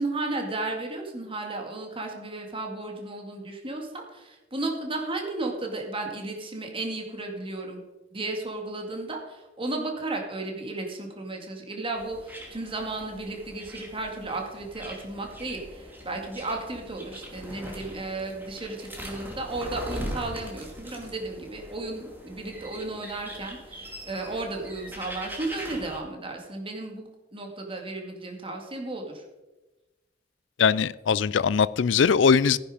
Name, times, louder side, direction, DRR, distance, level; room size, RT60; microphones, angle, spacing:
voice 1, 0.0-7.8 8.1-29.2, right 2 dB, 30° right, 2.1 m, -34 dB
sound 1, 12.0-26.0, equal, 10° right, 2.7 m, -41 dB
voice 2, 30.6-32.6, left 6 dB, 75° left, 0.4 m, -21 dB
15.0 x 10.5 x 5.0 m
head